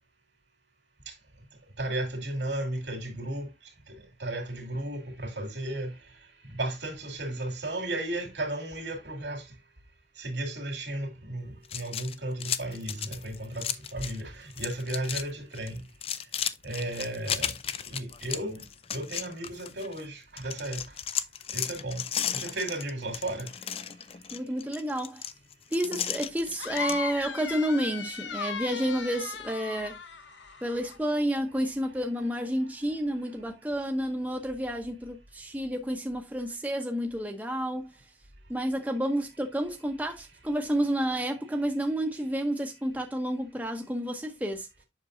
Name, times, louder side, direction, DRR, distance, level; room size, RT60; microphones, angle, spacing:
voice 1, 1.8-3.5 3.9-5.9 6.6-9.4 10.2-15.8 16.6-17.5 17.9-18.6 18.9-20.8 21.5-22.0 22.3-23.5, right 1 dB, 80° right, 2.5 m, -34 dB
sound 1, 11.6-14.2 14.5-15.3 15.5-20.0 20.4-27.0, left 9 dB, 30° left, 0.4 m, -34 dB
voice 2, 24.3-25.2 25.7-30.0 30.6-37.9 38.5-44.7, equal, 10° right, 0.9 m, -30 dB
sound 2, 26.6-31.0, left 6 dB, 85° left, 0.8 m, -37 dB
7.7 x 6.0 x 2.6 m
head